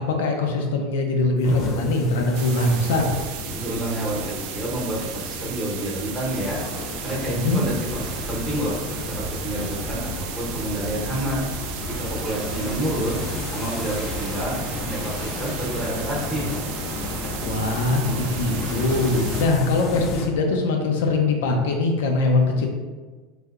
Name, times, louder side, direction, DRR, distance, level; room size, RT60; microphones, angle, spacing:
voice 1, 0.0-3.1 7.3-7.6 17.4-22.7, left 2 dB, 90° left, 3 dB, 0.6 m, -22 dB
sound 1, 1.4-20.3, left 2 dB, 35° left, 0.5 m, -32 dB
sound 2, 2.3-19.5, right 8 dB, 55° right, 0.3 m, -36 dB
voice 2, 3.5-6.6 7.0-8.8 9.0-11.4 11.9-13.2 13.5-16.6, right 1 dB, ahead, -7 dB, 0.9 m, -29 dB
3.3 x 2.7 x 2.4 m, 1.4 s
supercardioid pair, 155°, 0 cm